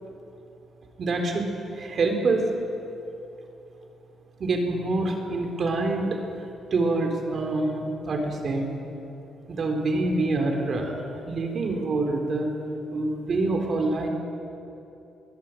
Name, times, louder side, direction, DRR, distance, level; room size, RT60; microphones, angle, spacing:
voice 1, 1.0-2.5 4.4-6.2 6.7-8.7 9.5-12.5 12.9-14.1, right 2 dB, 50° right, 3 dB, 3.8 m, -26 dB
22.5 x 20.5 x 8.6 m, 2.9 s
cardioid pair, 90°, 0 cm